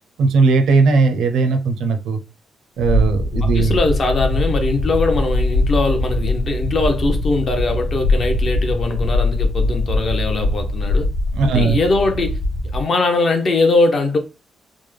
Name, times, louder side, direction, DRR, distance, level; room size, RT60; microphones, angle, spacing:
voice 1, 0.2-2.2 2.8-3.8 11.3-11.8, right 4 dB, 80° right, 0.4 m, -17 dB
sound 1, 2.8-12.8, left 2 dB, 80° left, 1.3 m, -21 dB
voice 2, 3.4-11.1 11.4-12.4 12.7-14.2, left 3 dB, 35° left, 0.5 m, -20 dB
3.3 x 2.0 x 3.1 m
cardioid pair, 180°, 0 cm